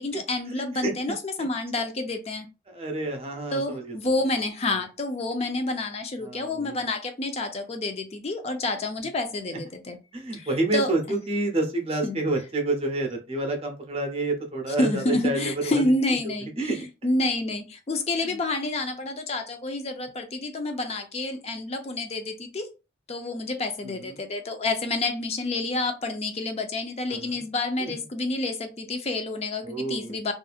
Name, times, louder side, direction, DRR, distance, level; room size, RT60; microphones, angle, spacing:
voice 1, 0.0-2.5 3.5-10.0 10.3-10.9 12.0-12.2 14.8-22.7 23.1-30.3, left 2 dB, 35° left, 0.4 m, -29 dB
voice 2, 0.6-0.9 2.7-3.9 6.2-6.8 9.5-9.6 10.1-15.8 16.6-16.8 23.8-24.2 27.1-27.4 27.8-27.9 29.6-30.2, right 2 dB, 35° right, 0.7 m, -29 dB
2.7 x 2.4 x 2.3 m
head